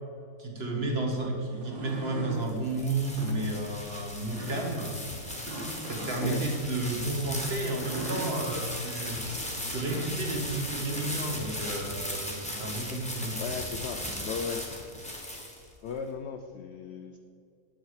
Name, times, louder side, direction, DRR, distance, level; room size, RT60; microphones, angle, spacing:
voice 1, 0.4-4.9 5.8-9.2 9.7-13.3, right 2 dB, 40° right, 0 dB, 1.6 m, -32 dB
sound 1, 1.5-2.4 3.0-3.4 4.3-4.7 5.4-6.4 7.6-8.3 9.5-10.2, right 1 dB, 60° right, 2.2 m, -39 dB
sound 2, 2.1-15.9, left 1 dB, 5° left, 1.1 m, -37 dB
voice 2, 6.2-6.5 13.4-14.6 15.8-17.2, left 6 dB, 80° left, 6 dB, 0.6 m, -36 dB
9.8 x 7.4 x 4.8 m, 2.5 s
omnidirectional pair, 1.7 m